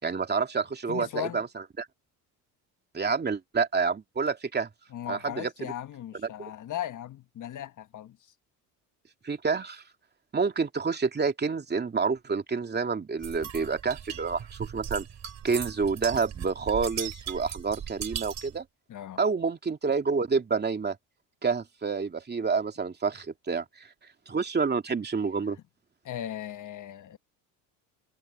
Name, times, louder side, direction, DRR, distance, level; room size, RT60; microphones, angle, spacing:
voice 1, 0.0-1.5 1.8-1.9 2.9-4.7 5.1-5.5 9.2-9.8 10.3-15.0 15.4-18.6 19.2-21.0 21.4-23.9 24.3-25.6, right 5 dB, 25° right, 2.6 m, -28 dB
voice 2, 0.9-1.4 4.9-8.2 18.9-19.2 26.0-27.2, left 11 dB, 50° left, 1.5 m, -37 dB
Metal water bottle - shaking almost empty bottle, 13.2-18.6, right 9 dB, 45° right, 4.0 m, -38 dB
supercardioid pair, 100°, 39 cm